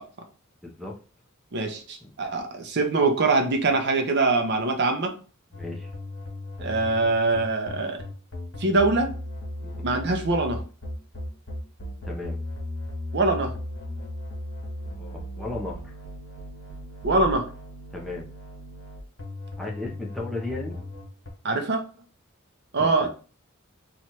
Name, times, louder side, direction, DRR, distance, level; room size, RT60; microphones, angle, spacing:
voice 1, 0.6-0.9 2.0-2.1 5.5-5.9 9.6-9.8 12.0-12.4 15.0-15.9 17.9-18.3 19.6-20.8 22.8-23.1, left 2 dB, ahead, -2 dB, 0.7 m, -35 dB
voice 2, 1.5-5.1 6.6-8.0 8.6-9.1 9.8-10.6 13.1-13.5 17.0-17.4 21.4-21.8 22.7-23.1, right 3 dB, 55° right, 4 dB, 0.7 m, -23 dB
sound 1, 5.5-21.3, left 1 dB, 70° left, 1.6 m, -36 dB
3.0 x 2.4 x 4.2 m, 0.37 s
head